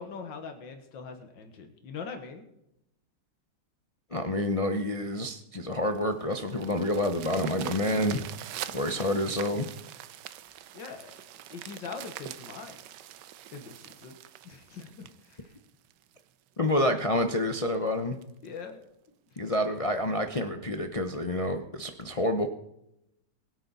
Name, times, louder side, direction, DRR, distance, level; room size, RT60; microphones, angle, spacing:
voice 1, 0.0-2.5 7.9-8.2 10.7-12.8 13.5-14.2 14.4-15.5 18.4-18.8, left 5 dB, 90° left, 5 dB, 2.0 m, -42 dB
voice 2, 4.1-8.3 8.7-9.7 16.6-18.2 19.4-22.5, left 1 dB, 50° left, 5 dB, 0.4 m, -28 dB
sound 1, 5.7-16.2 16.8-16.9 17.3-17.4 17.7-17.8 18.2-18.5 19.4-19.5, right 12 dB, 80° right, 1.3 m, -43 dB
21.5 x 9.1 x 4.1 m, 0.83 s
omnidirectional pair, 1.9 m